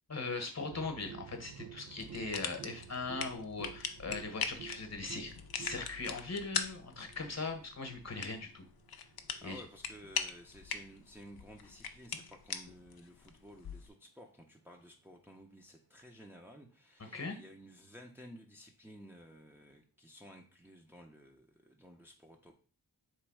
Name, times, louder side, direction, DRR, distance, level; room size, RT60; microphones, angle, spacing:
voice 1, 0.1-8.7 9.4-9.6 17.0-17.4, left 3 dB, 40° left, 5 dB, 1.1 m, -40 dB
sound 1, 0.7-12.5 13.9-14.0, right 10 dB, 55° right, 0.5 m, -53 dB
sound 2, 2.0-13.9, left 7 dB, 65° left, 0.6 m, -42 dB
voice 2, 9.3-22.5, equal, 5° right, 0 dB, 0.7 m, -54 dB
3.3 x 3.2 x 4.7 m, 0.39 s
cardioid pair, 55°, 39 cm